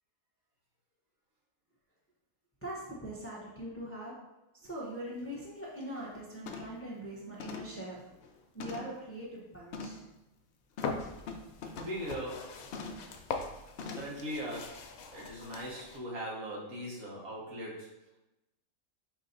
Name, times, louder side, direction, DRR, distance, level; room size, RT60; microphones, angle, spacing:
voice 1, 2.6-4.2 4.6-8.1 8.5-10.0, right 1 dB, 15° left, -5 dB, 0.6 m, -42 dB
sound 1, 4.6-4.7 5.2-5.4 5.8-6.1 6.5-6.9 7.4-9.1 9.7-10.1 10.8-12.0 12.7-13.1 13.8-14.2 14.6-14.7, left 3 dB, 65° left, 0.6 m, -43 dB
sound 2, 10.8-16.0, left 5 dB, 85° left, 1.1 m, -42 dB
voice 2, 11.8-12.6 13.9-17.9, equal, 80° right, -4 dB, 1.7 m, -40 dB
4.9 x 2.7 x 3.8 m, 0.98 s
omnidirectional pair, 1.5 m